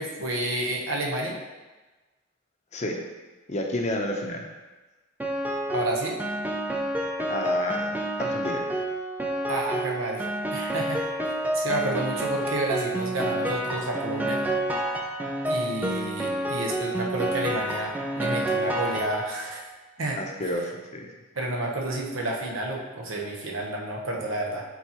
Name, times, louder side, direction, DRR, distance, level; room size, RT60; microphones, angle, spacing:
voice 1, 0.0-1.4 5.7-6.2 9.5-11.0 11.5-14.4 15.5-19.6 20.0-20.2 20.5-20.6 21.3-24.6, right 1 dB, 65° right, -1 dB, 1.1 m, -30 dB
voice 2, 3.5-4.5 7.3-7.9 8.2-8.6 20.2-21.1, left 1 dB, 35° left, 1 dB, 0.7 m, -30 dB
Piano, 5.2-19.6, right 1 dB, 10° right, 0.5 m, -29 dB
8.0 x 4.1 x 3.0 m, 1.2 s
head